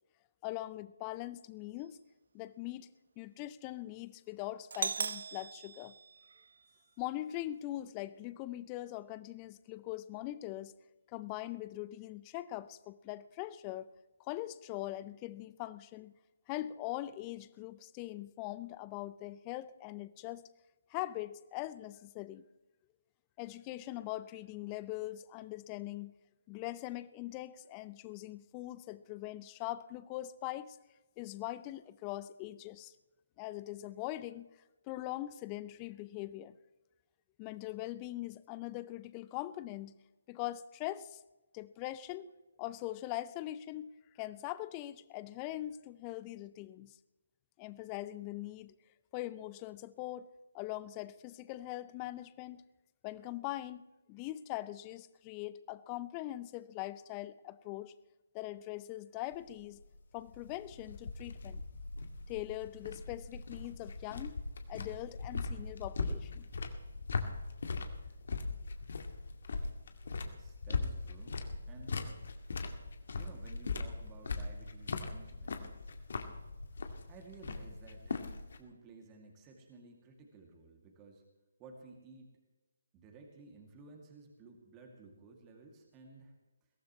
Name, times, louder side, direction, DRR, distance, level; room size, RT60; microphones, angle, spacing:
voice 1, 0.4-2.0 2.3-2.9 3.2-5.9 7.0-10.8 11.1-13.9 14.2-16.1 16.5-20.4 20.9-22.4 23.4-26.1 26.5-30.8 31.2-32.9 33.4-34.5 34.9-36.6 37.4-40.0 40.3-41.2 41.5-42.3 42.6-43.9 44.2-47.0 47.6-48.7 49.1-50.3 50.5-52.6 53.0-53.8 54.1-57.9 58.3-59.8 60.1-61.6 62.3-64.4 64.7-66.4, left 15 dB, 20° left, 16 dB, 0.6 m, -42 dB
Doorbell, 4.7-6.7, right 5 dB, 55° right, 0.5 m, -39 dB
sound 1, 59.3-78.6, left 4 dB, 55° left, 2.0 m, -40 dB
voice 2, 70.2-71.4 71.7-72.1 73.2-75.7 77.0-81.2 81.6-82.4 82.9-86.3, right 3 dB, 20° right, 1 dB, 2.6 m, -55 dB
22.0 x 17.0 x 3.2 m, 1.1 s
figure-of-eight pair, 145°, 0 cm